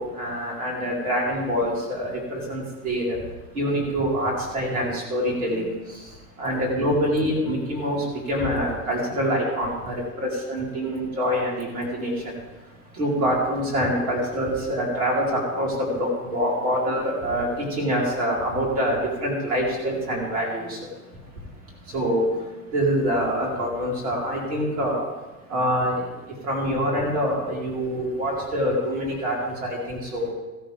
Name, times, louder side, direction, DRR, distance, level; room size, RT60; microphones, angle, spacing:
voice 1, 0.0-3.2 3.5-5.7 6.4-12.1 13.0-20.8 21.9-22.3 22.7-25.1 25.5-26.0 26.4-30.3, equal, 70° right, -2 dB, 4.5 m, -25 dB
15.0 x 13.5 x 3.5 m, 1.1 s
figure-of-eight pair, 70°, 43 cm